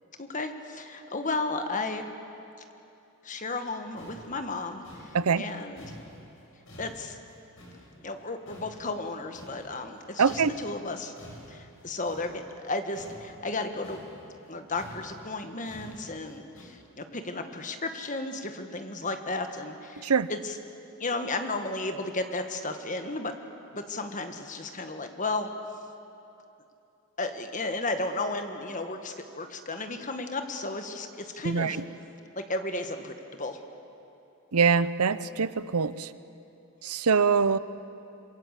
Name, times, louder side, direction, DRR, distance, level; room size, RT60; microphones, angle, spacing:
voice 1, 0.2-2.0 3.2-6.0 6.8-7.2 8.0-11.1 11.5-14.0 14.5-20.6 21.0-23.3 23.7-25.5 27.2-31.8 32.3-33.6, left 2 dB, 35° left, 6 dB, 1.7 m, -34 dB
sound 1, 3.7-3.8 4.0-8.2 8.5-10.0 10.3-16.6, equal, 60° left, 6.7 m, -49 dB
voice 2, 10.2-10.5 20.0-20.3 31.4-31.8 34.5-36.1 36.8-37.6, right 5 dB, 85° right, 16 dB, 0.7 m, -24 dB
27.5 x 22.0 x 8.3 m, 2.9 s
head